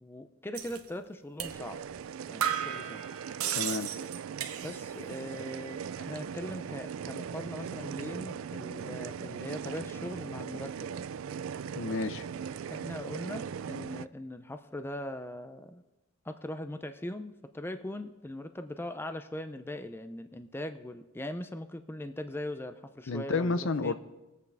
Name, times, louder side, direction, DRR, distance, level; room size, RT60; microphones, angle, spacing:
voice 1, 0.0-1.8 2.3-3.1 4.6-10.9 12.7-15.8 16.2-23.9, left 1 dB, 10° left, 9 dB, 0.4 m, -40 dB
sound 1, 0.5-0.8 1.4-1.6 1.9-2.0 2.4-5.0 5.3-5.9, right 9 dB, 85° right, 0.9 m, -35 dB
sound 2, 1.4-14.1, right 7 dB, 65° right, 0.3 m, -39 dB
voice 2, 3.5-3.9 11.7-12.3 23.1-23.9, left 3 dB, 60° left, 13 dB, 0.5 m, -31 dB
21.0 x 8.3 x 3.4 m, 1.0 s
head